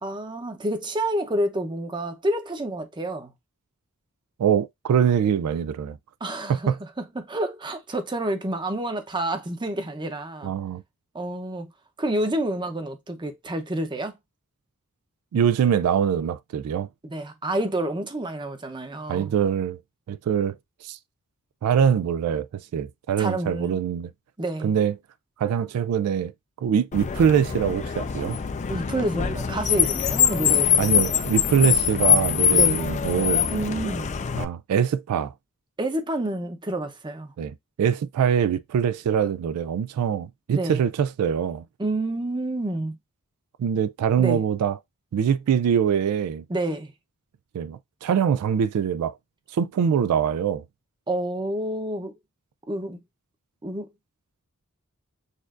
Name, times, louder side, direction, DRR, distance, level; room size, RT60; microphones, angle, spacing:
voice 1, 0.0-3.3 6.2-10.5 11.1-11.7 12.0-14.2 17.0-19.3 23.2-23.8 24.4-24.7 28.7-31.0 32.5-32.8 33.5-34.1 35.8-37.3 40.5-40.8 41.8-43.0 44.2-44.4 46.5-46.9 51.1-52.2 52.7-53.0 53.6-53.9, right 1 dB, 20° right, 0.7 m, -29 dB
voice 2, 4.4-6.0 6.5-6.8 10.4-10.8 15.3-16.9 19.1-19.8 20.1-20.6 20.8-21.0 21.6-22.5 22.7-24.1 24.6-24.9 25.4-26.3 26.6-28.4 30.8-33.4 34.4-35.3 37.4-41.6 43.6-44.8 45.1-46.4 47.5-49.1 49.5-50.6, right 8 dB, 80° right, 0.3 m, -23 dB
Car, 26.9-34.4, left 8 dB, 30° left, 0.4 m, -23 dB
6.5 x 2.5 x 2.4 m
head